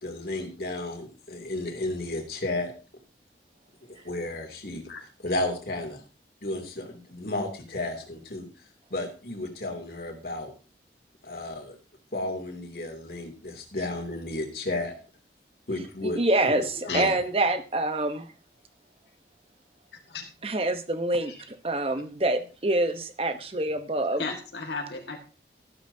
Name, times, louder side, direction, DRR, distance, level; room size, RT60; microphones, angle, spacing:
voice 1, 0.0-2.7 4.0-4.8 5.2-6.0 6.4-8.5 8.9-10.5 11.2-11.8 12.1-14.9 15.7-16.2 16.4-17.2, left 2 dB, 55° left, 3 dB, 2.7 m, -33 dB
voice 2, 16.0-18.3 20.4-24.2, right 2 dB, 30° right, 9 dB, 1.0 m, -26 dB
voice 3, 24.2-25.2, left 4 dB, 75° left, 2 dB, 1.6 m, -34 dB
13.0 x 12.5 x 2.8 m, 0.35 s
head